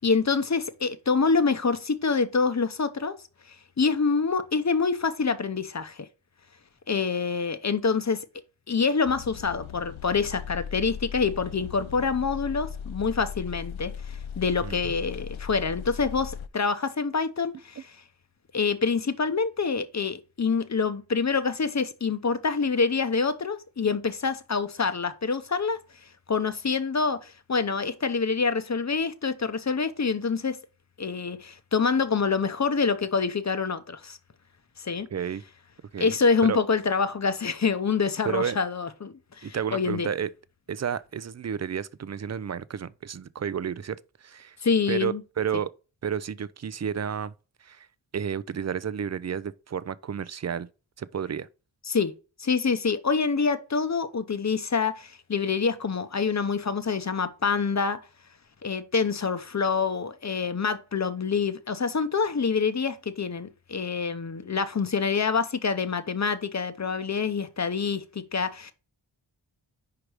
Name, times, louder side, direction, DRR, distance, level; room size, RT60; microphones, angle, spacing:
voice 1, 0.0-3.2 3.8-6.1 6.9-8.2 8.7-17.9 18.5-25.8 26.3-30.6 31.0-34.2 34.8-35.1 36.0-40.1 44.6-45.2 51.9-52.1 52.4-58.0 58.6-68.7, left 5 dB, 35° left, 0.8 m, -26 dB
sound 1, 9.0-16.5, left 8 dB, 75° left, 0.6 m, -38 dB
voice 2, 35.1-35.4 35.9-36.1 36.4-36.6 38.3-38.6 39.4-40.3 40.7-44.6 44.9-45.7 46.0-47.3 47.6-47.9 48.1-50.7 51.0-51.5, right 7 dB, 35° right, 0.4 m, -31 dB
5.1 x 4.8 x 4.8 m
wide cardioid pair, 70°, 47 cm